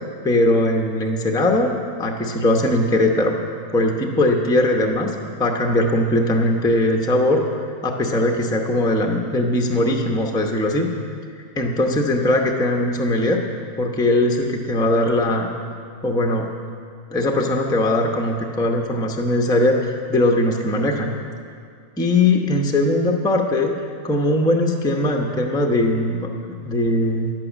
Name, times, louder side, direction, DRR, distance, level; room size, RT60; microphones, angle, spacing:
voice 1, 0.2-1.7 2.0-3.4 3.7-5.1 5.4-7.4 7.8-10.9 11.6-13.4 13.8-15.5 16.0-16.5 17.1-21.1 22.0-23.7 24.0-26.3 26.6-27.3, left 1 dB, 5° left, 2 dB, 0.7 m, -20 dB
11.0 x 8.5 x 7.4 m, 2.3 s
omnidirectional pair, 1.5 m